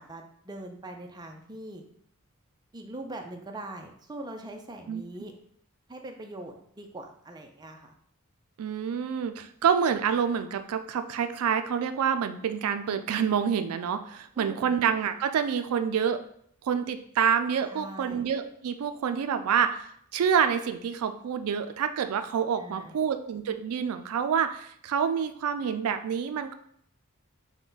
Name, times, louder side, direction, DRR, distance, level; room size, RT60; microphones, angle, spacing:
voice 1, 0.0-1.8 2.7-5.3 5.9-7.9 14.4-14.7 17.7-18.2 22.6-23.0, right 1 dB, 20° right, 3 dB, 0.5 m, -42 dB
voice 2, 8.6-16.2 16.6-26.5, right 7 dB, 85° right, 9 dB, 0.4 m, -27 dB
5.8 x 2.2 x 3.9 m, 0.66 s
head